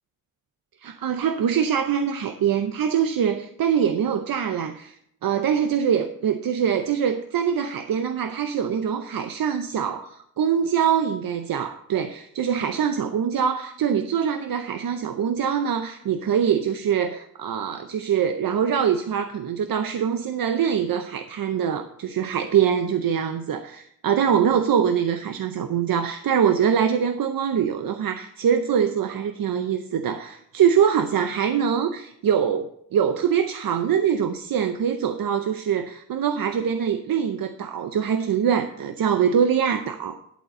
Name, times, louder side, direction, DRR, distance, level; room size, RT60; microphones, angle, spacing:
voice 1, 0.8-40.2, right 8 dB, 80° right, 0.6 m, -23 dB
11.0 x 4.1 x 7.6 m
cardioid pair, 65°, 34 cm